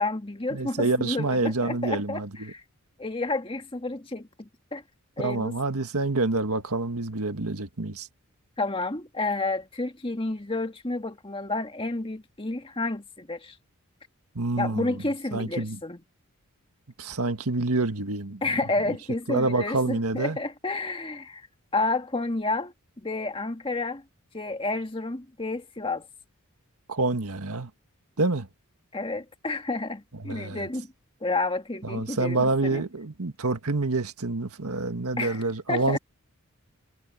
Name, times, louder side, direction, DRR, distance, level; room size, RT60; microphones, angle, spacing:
voice 1, 0.0-2.6 3.0-4.8 5.2-5.6 8.6-13.5 14.6-16.0 18.4-21.5 21.7-24.0 24.3-26.1 28.9-30.9 31.2-32.8 35.2-35.4 35.7-36.0, left 2 dB, 25° left, 1.7 m, -30 dB
voice 2, 0.5-2.5 5.2-8.1 14.4-15.0 15.3-15.8 17.0-18.4 18.9-19.0 19.3-20.4 26.9-27.7 28.2-28.5 30.2-30.7 31.8-36.0, right 3 dB, 85° right, 1.7 m, -27 dB
head